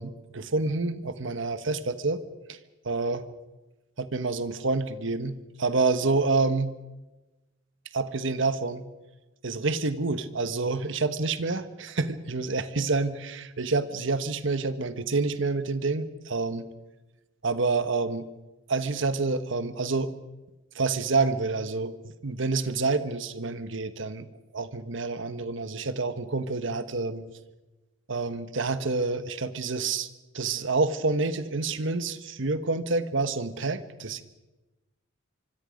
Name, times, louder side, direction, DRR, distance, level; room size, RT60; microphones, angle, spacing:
voice 1, 0.0-2.2 2.5-2.6 2.8-3.2 4.0-6.7 7.9-8.9 9.4-13.1 13.6-16.7 17.4-18.3 18.7-20.1 20.7-24.3 24.5-27.3 28.1-30.1 30.3-34.2, right 3 dB, 65° right, 12 dB, 1.3 m, -28 dB
25.0 x 24.5 x 5.2 m, 1.1 s
head